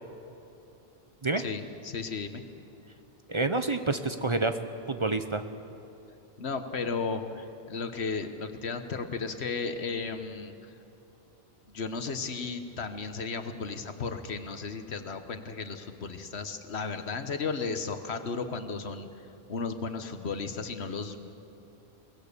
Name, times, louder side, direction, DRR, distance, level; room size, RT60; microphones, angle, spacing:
voice 1, 1.4-2.4 6.4-10.7 11.7-19.1 19.5-21.3, left 4 dB, 80° left, 8 dB, 1.5 m, -34 dB
voice 2, 3.3-4.5 4.9-5.4, right 3 dB, 30° right, 8 dB, 0.8 m, -28 dB
23.0 x 19.0 x 6.8 m, 2.9 s
omnidirectional pair, 1.1 m